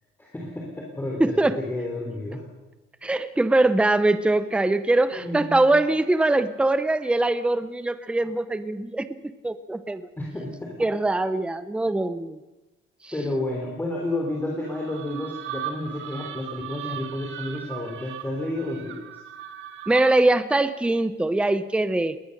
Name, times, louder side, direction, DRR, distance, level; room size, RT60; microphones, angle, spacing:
voice 1, 0.2-2.4 5.1-5.7 10.2-10.8 13.1-19.0, left 1 dB, 10° left, -1 dB, 3.5 m, -31 dB
voice 2, 1.2-1.6 3.0-10.0 10.8-12.4 13.0-13.1 19.9-22.2, right 2 dB, 5° right, 12 dB, 0.8 m, -22 dB
sound 1, 14.6-20.3, right 10 dB, 75° right, 2.0 m, -38 dB
20.0 x 19.5 x 6.6 m, 1.1 s
cardioid pair, 145°, 20 cm